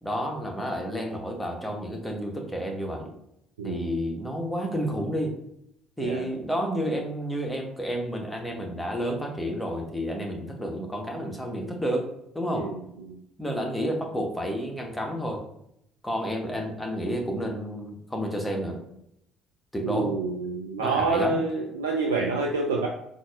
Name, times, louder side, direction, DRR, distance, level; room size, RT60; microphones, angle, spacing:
voice 1, 0.0-3.1 3.6-5.3 6.0-12.1 12.3-12.7 13.4-15.4 16.0-18.8 19.7-20.1 20.8-21.4, equal, 5° left, 1 dB, 0.9 m, -30 dB
voice 2, 19.8-22.9, right 3 dB, 80° right, -1 dB, 0.3 m, -27 dB
4.0 x 2.5 x 2.3 m, 0.77 s
figure-of-eight pair, 55°, 0 cm